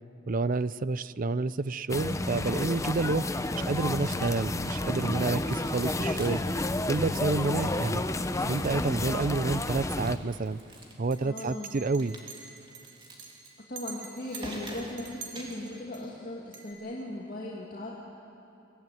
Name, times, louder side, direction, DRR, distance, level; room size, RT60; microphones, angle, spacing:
voice 1, 0.3-6.6 6.8-8.0 8.4-10.6 11.0-12.2, right 3 dB, 45° right, 17 dB, 0.5 m, -29 dB
sound 1, 1.9-10.2, left 2 dB, 15° left, 0.7 m, -30 dB
sound 2, 3.2-3.8 4.1-5.2 5.4-6.6 6.8-6.9 7.2-9.4 9.9-11.1 11.9-15.8, right 1 dB, 25° right, 3.1 m, -48 dB
Chink clink, 11.1-16.0 16.5-16.7, right 5 dB, 75° right, 4.0 m, -45 dB
voice 2, 11.2-11.7 13.7-17.9, left 1 dB, 45° left, -4 dB, 2.4 m, -38 dB
24.0 x 17.5 x 9.3 m, 2.7 s
head